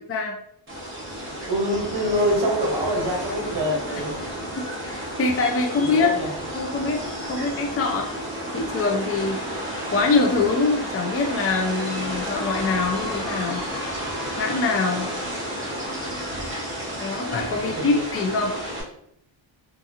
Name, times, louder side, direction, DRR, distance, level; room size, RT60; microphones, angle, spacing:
sound 1, 0.7-18.8, equal, 25° right, 0.8 m, -32 dB
voice 1, 1.5-4.2 5.8-6.3 17.6-18.0, equal, 55° right, -1 dB, 0.9 m, -25 dB
sound 2, 1.7-18.9, left 2 dB, 65° left, 1.0 m, -41 dB
voice 2, 4.8-6.1 6.5-7.0 7.3-8.2 8.5-9.4 9.9-13.6 14.3-15.1 17.0-18.6, left 3 dB, 30° left, 1 dB, 0.4 m, -24 dB
2.7 x 2.6 x 2.5 m, 0.70 s
wide cardioid pair, 125°, 47 cm